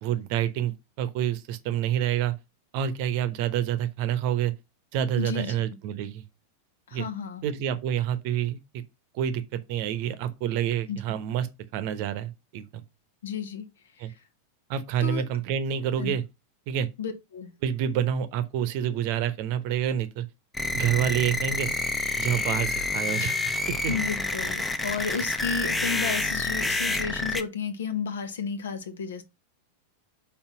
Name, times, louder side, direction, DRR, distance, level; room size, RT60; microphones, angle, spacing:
voice 1, 0.0-2.3 2.7-4.5 4.9-6.2 6.9-7.1 7.4-8.8 9.1-11.5 11.7-12.8 14.0-14.1 14.7-16.2 16.7-16.9 17.6-20.3 20.7-21.7 22.2-23.4 23.7-23.9, right 10 dB, 45° right, 0.9 m, -28 dB
voice 2, 5.2-5.8 6.9-7.4 10.9-11.0 13.2-13.7 14.0-14.2 15.0-15.2 16.0-16.1 17.0-17.5 23.9-29.2, left 6 dB, 65° left, 1.3 m, -32 dB
sound 1, 20.5-27.4, left 2 dB, 10° left, 0.8 m, -28 dB
5.7 x 4.3 x 5.6 m
figure-of-eight pair, 90°, 0 cm